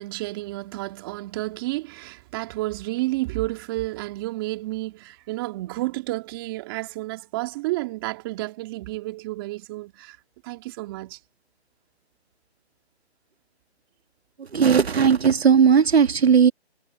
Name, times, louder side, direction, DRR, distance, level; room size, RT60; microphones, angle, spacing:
voice 1, 0.0-10.2 10.4-11.2, right 19 dB, 20° right, 2.7 m, -31 dB
voice 2, 14.5-16.5, right 7 dB, 65° right, 1.5 m, -17 dB
hypercardioid pair, 160°, 33 cm